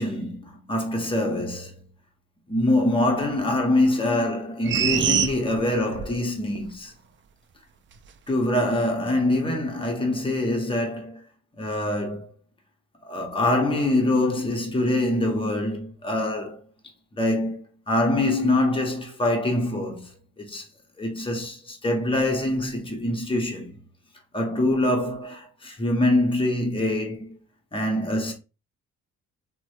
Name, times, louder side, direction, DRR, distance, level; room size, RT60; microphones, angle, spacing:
voice 1, 0.0-1.8 2.5-6.9 8.3-11.2 11.6-12.3 13.0-16.6 17.1-20.7 21.0-23.8 24.3-27.4 27.7-28.3, left 1 dB, 15° left, 0.9 m, -24 dB
sound 1, 4.7-6.2 6.6-6.7, right 7 dB, 40° right, 0.4 m, -24 dB
2.9 x 2.1 x 2.9 m
cardioid pair, 90°, 30 cm